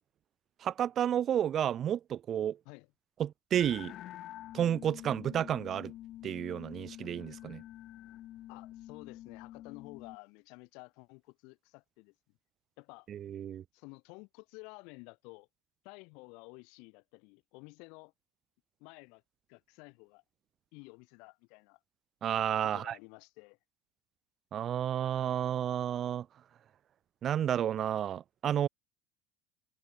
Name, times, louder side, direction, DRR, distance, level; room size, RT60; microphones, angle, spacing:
voice 1, 0.6-2.6 3.2-3.9 4.5-5.9 6.2-7.6 13.1-13.6 22.2-23.0 24.5-26.3 27.2-28.7, right 10 dB, 30° right, 0.4 m, -31 dB
sound 1, 3.5-10.2, left 14 dB, 40° left, 1.5 m, -47 dB
voice 2, 8.5-12.1 12.8-13.1 13.7-15.5 15.8-18.1 18.8-19.2 19.5-20.2 20.7-21.8 22.6-23.6, left 31 dB, 60° left, 5.0 m, -52 dB
cardioid pair, 155°, 0 cm